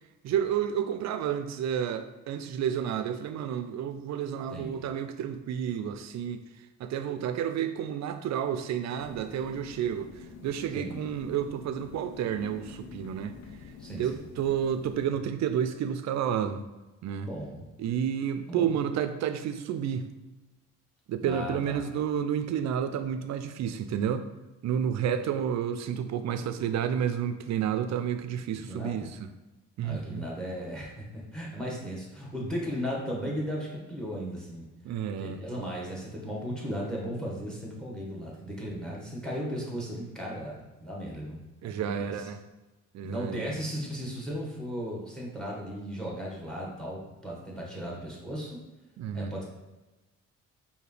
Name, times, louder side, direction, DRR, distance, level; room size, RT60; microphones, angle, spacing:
voice 1, 0.2-6.4 6.8-10.1 10.4-13.4 13.9-16.6 17.0-17.3 17.8-20.1 21.1-24.3 24.6-29.2 29.8-30.3 34.8-35.4 41.6-42.4 42.9-43.6 49.0-49.3, right 9 dB, 65° right, 10 dB, 0.5 m, -30 dB
voice 2, 4.5-4.9 10.7-11.0 13.8-14.2 17.2-17.6 18.5-18.7 21.2-21.8 28.7-29.0 29.8-31.0 31.3-34.7 35.2-42.2 43.0-48.6 49.1-49.4, equal, ahead, -3 dB, 1.4 m, -36 dB
sound 1, 9.0-15.1, left 5 dB, 65° left, 0.6 m, -47 dB
4.7 x 2.8 x 3.2 m, 1.1 s
cardioid pair, 90°, 30 cm